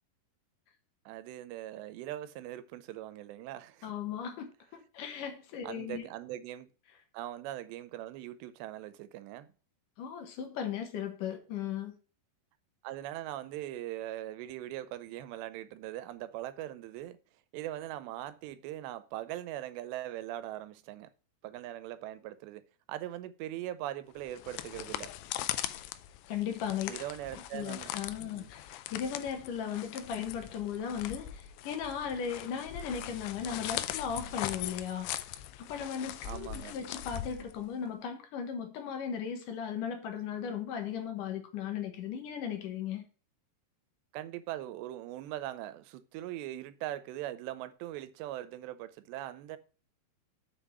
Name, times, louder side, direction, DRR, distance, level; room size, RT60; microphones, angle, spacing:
voice 1, 1.1-3.9 5.6-6.7 7.1-9.5 12.8-17.2 17.5-21.1 21.4-25.1 26.9-27.9 28.2-28.5 36.3-36.8 44.1-49.6, right 13 dB, 85° right, 2.9 m, -41 dB
voice 2, 3.8-6.1 10.0-11.9 26.3-26.9 27.3-43.0, left 8 dB, 65° left, 2.4 m, -37 dB
sound 1, 24.2-37.9, left 13 dB, 80° left, 2.7 m, -40 dB
6.9 x 5.4 x 7.1 m
omnidirectional pair, 4.9 m